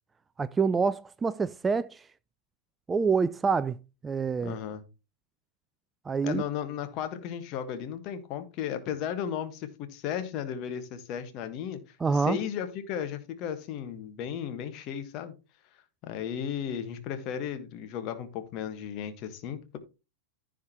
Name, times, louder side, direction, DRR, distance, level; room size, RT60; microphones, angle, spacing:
voice 1, 0.4-2.1 2.9-3.8 4.0-4.6 6.1-6.4 12.0-12.4, right 5 dB, 15° right, 0.3 m, -26 dB
voice 2, 4.4-4.8 6.2-15.3 16.0-19.8, left 9 dB, 40° left, 1.4 m, -35 dB
15.0 x 5.0 x 3.0 m
figure-of-eight pair, 90°, 0 cm